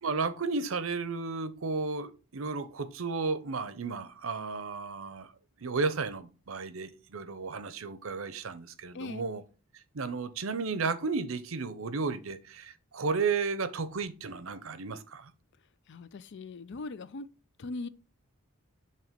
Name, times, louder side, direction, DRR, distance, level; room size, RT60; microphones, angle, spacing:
voice 1, 0.0-5.3 5.6-9.4 9.9-15.3, right 4 dB, 70° right, 0.7 m, -33 dB
voice 2, 15.9-17.3 17.6-17.9, left 3 dB, 55° left, 0.5 m, -40 dB
7.6 x 3.0 x 5.1 m
head